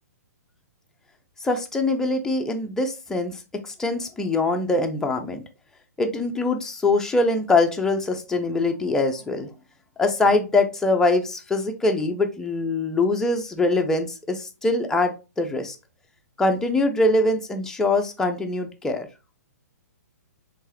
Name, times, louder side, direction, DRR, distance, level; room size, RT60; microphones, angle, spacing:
voice 1, 1.4-5.4 6.0-9.5 10.0-15.8 16.4-19.1, left 2 dB, 5° left, 4 dB, 0.5 m, -23 dB
4.6 x 3.2 x 2.9 m, 0.30 s
figure-of-eight pair, 120°, 9 cm